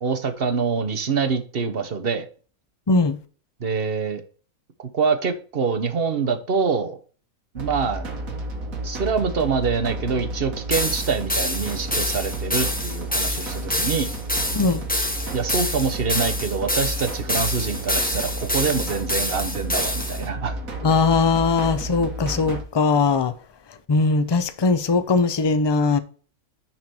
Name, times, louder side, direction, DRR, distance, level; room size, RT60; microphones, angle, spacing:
voice 1, 0.0-2.3 3.6-4.2 4.9-7.0 7.5-8.0 8.8-14.1 15.3-20.6, right 5 dB, 45° right, 1.2 m, -25 dB
sound 1, 7.6-22.6, right 1 dB, 65° right, 1.7 m, -32 dB
sound 2, 10.7-20.2, left 1 dB, 5° left, 1.0 m, -27 dB
voice 2, 20.8-23.3 23.9-26.0, left 4 dB, 40° left, 0.3 m, -20 dB
9.6 x 4.6 x 4.3 m
omnidirectional pair, 1.5 m